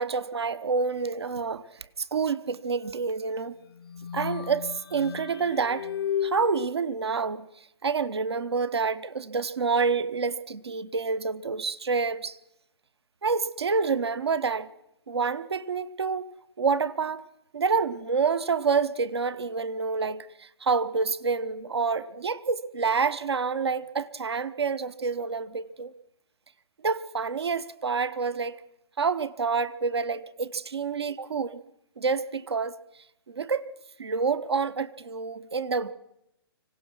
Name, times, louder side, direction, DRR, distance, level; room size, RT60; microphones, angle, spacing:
voice 1, 0.0-1.6 2.0-3.5 4.1-5.9 6.2-12.4 13.2-14.7 15.1-16.2 16.6-17.2 17.5-25.9 26.8-28.6 29.0-31.6 32.0-32.8 33.3-33.6 34.0-35.9, right 5 dB, 80° right, 1.0 m, -28 dB
sound 1, 3.7-6.7, left 9 dB, 65° left, 0.7 m, -33 dB
25.5 x 17.0 x 6.1 m
figure-of-eight pair, 125°, 13 cm